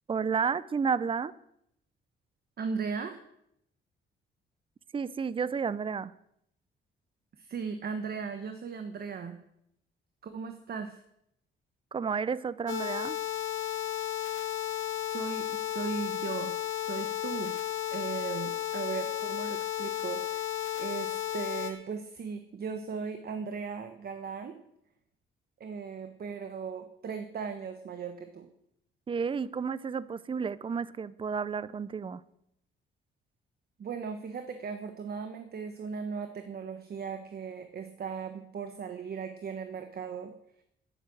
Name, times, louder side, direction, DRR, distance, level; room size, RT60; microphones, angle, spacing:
voice 1, 0.1-1.3 4.9-6.1 11.9-13.2 29.1-32.2, right 6 dB, 25° right, 18 dB, 0.6 m, -31 dB
voice 2, 2.6-3.2 7.4-9.4 10.2-11.0 15.1-17.6 17.9-20.5 20.8-24.5 25.6-28.5 33.8-40.3, right 6 dB, 50° right, 7 dB, 1.3 m, -37 dB
sound 1, 12.7-21.7, left 12 dB, 75° left, 2.2 m, -33 dB
11.0 x 9.7 x 7.7 m, 0.76 s
cardioid pair, 90°, 20 cm